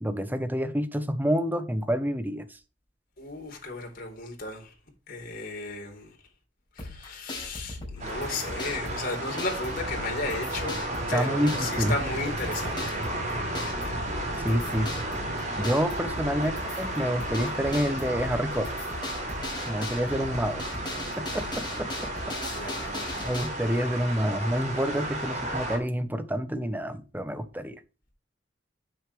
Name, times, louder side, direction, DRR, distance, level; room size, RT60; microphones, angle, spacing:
voice 1, 0.0-2.6 11.1-11.9 14.4-14.9 15.6-18.8 19.7-20.6 21.2-21.9 22.2-22.3 23.2-27.8, equal, 10° right, 1.1 m, -28 dB
voice 2, 3.2-4.7 5.1-6.2 6.8-10.8 11.1-13.0 16.3-16.6 22.5-23.3, left 3 dB, 50° left, 4.0 m, -35 dB
sound 1, 6.8-23.5, left 2 dB, 25° left, 5.8 m, -39 dB
sound 2, 8.0-25.8, right 1 dB, 40° right, 3.8 m, -33 dB
9.8 x 8.0 x 3.4 m
head